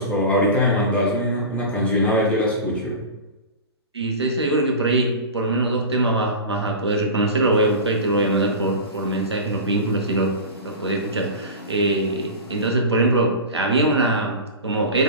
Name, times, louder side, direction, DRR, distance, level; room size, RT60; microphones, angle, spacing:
voice 1, 0.0-3.0, left 1 dB, 10° left, -5 dB, 0.6 m, -21 dB
voice 2, 3.9-10.3 10.6-15.0, right 2 dB, 85° right, 1 dB, 0.5 m, -22 dB
sound 1, 7.5-12.7, left 1 dB, 70° left, 0.7 m, -40 dB
3.5 x 2.1 x 2.2 m, 1.1 s
figure-of-eight pair, 115°, 14 cm